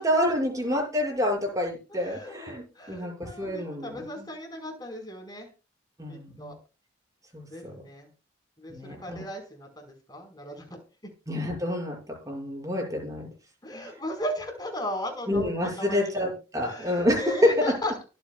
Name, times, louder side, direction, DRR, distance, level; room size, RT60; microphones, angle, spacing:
voice 1, 0.0-4.3 6.0-6.5 7.3-7.8 8.7-9.2 11.3-12.0 12.3-13.3 15.3-17.7, left 1 dB, 20° right, 0 dB, 6.6 m, -28 dB
voice 2, 1.9-5.5 6.1-6.6 7.5-8.1 8.6-11.1 13.6-18.0, equal, 20° left, 3 dB, 4.9 m, -37 dB
24.0 x 8.9 x 2.4 m, 0.32 s
head